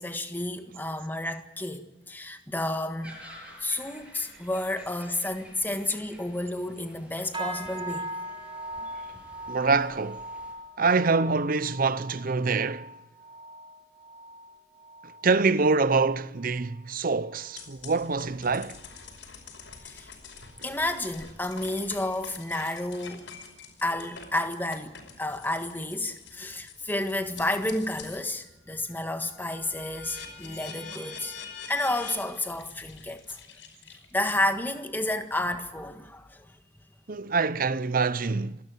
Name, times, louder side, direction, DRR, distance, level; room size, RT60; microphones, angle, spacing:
voice 1, 0.0-3.2 3.6-8.1 19.8-20.1 20.6-23.2 23.8-31.4 31.7-33.4 33.9-36.5, left 1 dB, 10° left, 1.6 m, -31 dB
sound 1, 3.0-10.5, equal, 5° right, 7.3 m, -51 dB
sound 2, 7.3-16.9 17.2-17.6 18.0-18.3 18.9-19.0, right 1 dB, 25° right, 3.1 m, -41 dB
voice 2, 9.5-10.2 10.8-12.9 15.2-18.8 37.1-38.6, right 4 dB, 50° right, 0.7 m, -25 dB
sound 3, 17.6-28.3 28.7-34.3, left 5 dB, 80° left, 5.4 m, -46 dB
27.5 x 12.0 x 9.0 m
head